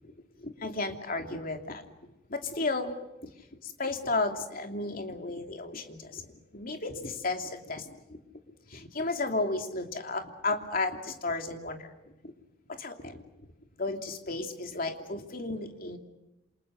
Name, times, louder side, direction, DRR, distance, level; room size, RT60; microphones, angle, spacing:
voice 1, 0.4-1.8 2.3-3.0 3.2-3.3 3.6-6.3 6.5-8.2 8.7-11.9 12.2-12.3 12.7-13.2 13.8-16.0, left 3 dB, 45° left, 4 dB, 2.9 m, -33 dB
28.5 x 27.5 x 6.6 m, 0.94 s
head